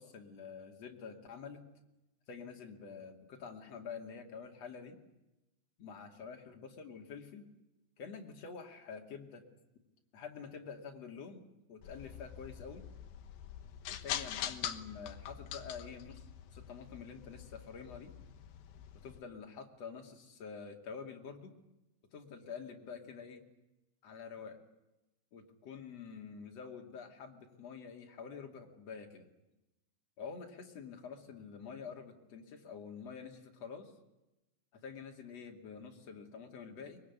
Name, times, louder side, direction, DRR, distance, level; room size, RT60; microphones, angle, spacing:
voice 1, 0.0-1.6 2.3-5.0 5.8-7.5 8.0-9.4 10.1-11.4 11.7-12.8 13.9-16.2 16.5-18.1 19.0-21.5 22.1-23.4 24.0-24.6 25.3-29.3 30.2-33.9 34.7-37.0, left 6 dB, 45° left, 3 dB, 3.2 m, -47 dB
sound 1, 11.8-19.2, left 10 dB, 70° left, 2.6 m, -44 dB
23.5 x 22.5 x 9.6 m, 0.96 s
omnidirectional pair, 5.0 m